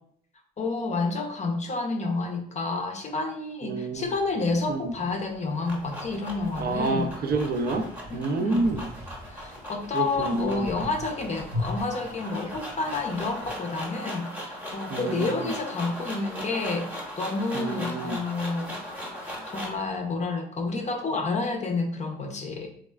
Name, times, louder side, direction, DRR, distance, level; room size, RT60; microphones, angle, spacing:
voice 1, 0.6-7.1 8.1-8.7 9.3-18.8 19.5-22.7, left 3 dB, 35° left, 3 dB, 0.5 m, -30 dB
voice 2, 3.6-4.1 4.7-4.9 6.6-8.9 9.9-10.7 14.9-15.5 17.5-18.2, right 3 dB, 50° right, 6 dB, 0.4 m, -29 dB
sound 1, 3.9-13.5, left 1 dB, 85° right, 1.1 m, -41 dB
sound 2, 5.2-19.9, equal, 5° right, 0.8 m, -39 dB
3.2 x 2.4 x 2.2 m, 0.64 s
cardioid pair, 90°, 20 cm